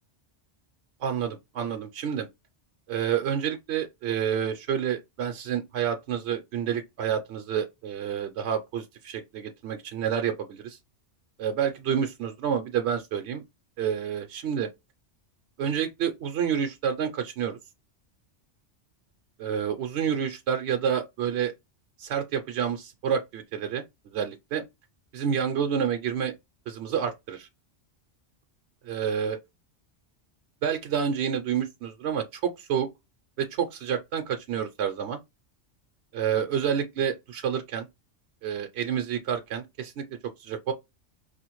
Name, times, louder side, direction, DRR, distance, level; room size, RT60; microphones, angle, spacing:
voice 1, 1.0-2.3 2.9-10.8 11.4-13.4 13.8-14.7 15.6-17.6 19.4-21.5 22.0-24.6 25.1-26.3 26.7-27.5 28.8-29.4 30.6-32.9 33.4-35.2 36.1-37.9 38.4-40.0 40.4-40.7, right 8 dB, 70° right, 0.9 m, -29 dB
4.9 x 2.4 x 3.0 m
omnidirectional pair, 1.2 m